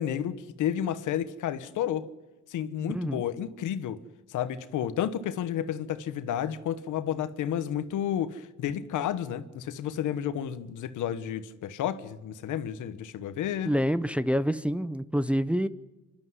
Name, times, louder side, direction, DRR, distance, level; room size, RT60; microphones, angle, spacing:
voice 1, 0.0-2.1 2.5-4.0 4.3-13.7, left 10 dB, 80° left, 1.3 m, -31 dB
voice 2, 13.6-15.7, equal, 5° right, 0.7 m, -27 dB
26.5 x 12.0 x 9.7 m
cardioid pair, 90°, 30 cm